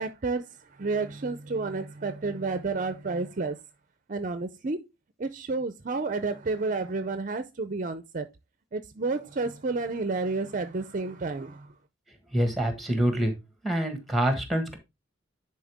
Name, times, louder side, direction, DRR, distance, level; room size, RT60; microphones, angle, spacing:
voice 1, 0.0-3.6 4.1-4.8 5.2-8.3 8.7-11.8, right 3 dB, 40° right, 0.5 m, -30 dB
voice 2, 12.3-13.3 13.6-14.8, right 1 dB, ahead, 1.5 m, -26 dB
10.0 x 4.3 x 3.5 m
head